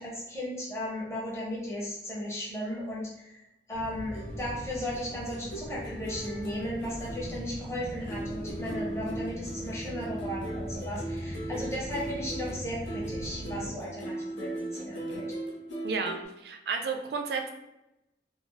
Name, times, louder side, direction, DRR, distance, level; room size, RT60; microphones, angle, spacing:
voice 1, 0.0-3.4 3.7-15.3, equal, 15° left, -6 dB, 0.8 m, -36 dB
sound 1, 3.7-13.7, equal, 45° left, 0.7 m, -40 dB
sound 2, 4.1-7.8 8.1-16.2, right 1 dB, 90° left, 0.6 m, -39 dB
voice 2, 15.8-17.5, right 4 dB, 60° right, 4 dB, 0.4 m, -32 dB
2.7 x 2.0 x 3.0 m, 0.89 s
head